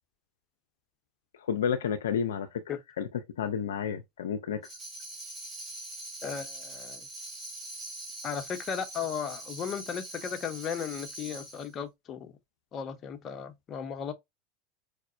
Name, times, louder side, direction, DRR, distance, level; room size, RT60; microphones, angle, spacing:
voice 1, 1.4-2.6 3.0-4.7, left 7 dB, 80° left, 0.4 m, -31 dB
Tambourine, 4.6-11.7, right 2 dB, 25° right, 1.8 m, -43 dB
voice 2, 6.2-7.0 8.2-12.3 12.7-14.1, left 7 dB, 35° left, 0.7 m, -36 dB
4.8 x 2.1 x 2.6 m
hypercardioid pair, 90°, 0 cm